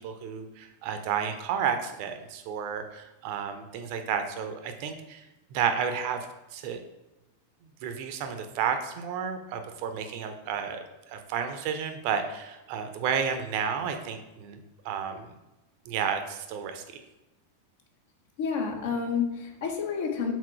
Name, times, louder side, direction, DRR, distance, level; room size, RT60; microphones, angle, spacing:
voice 1, 0.0-5.2 5.5-6.3 6.5-6.8 7.8-15.3 15.9-16.8, right 7 dB, 45° right, 7 dB, 0.7 m, -31 dB
voice 2, 18.4-20.3, left 6 dB, 55° left, 3 dB, 1.2 m, -29 dB
6.2 x 4.3 x 4.6 m, 1.0 s
figure-of-eight pair, 90°, 0 cm